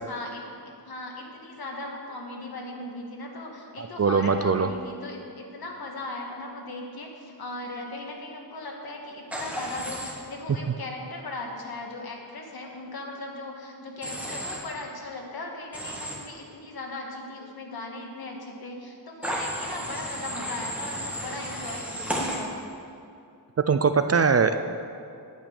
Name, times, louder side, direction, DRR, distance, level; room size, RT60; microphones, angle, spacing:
voice 1, 0.1-22.5, left 2 dB, 60° left, 0 dB, 1.9 m, -38 dB
voice 2, 3.8-4.7 23.7-24.6, right 5 dB, 40° right, 9 dB, 0.4 m, -21 dB
Human voice / Train, 9.3-10.1 14.0-14.6 15.7-16.1 19.2-22.4, equal, 5° right, 1.8 m, -33 dB
9.9 x 9.0 x 6.8 m, 2.5 s
wide cardioid pair, 140°, 41 cm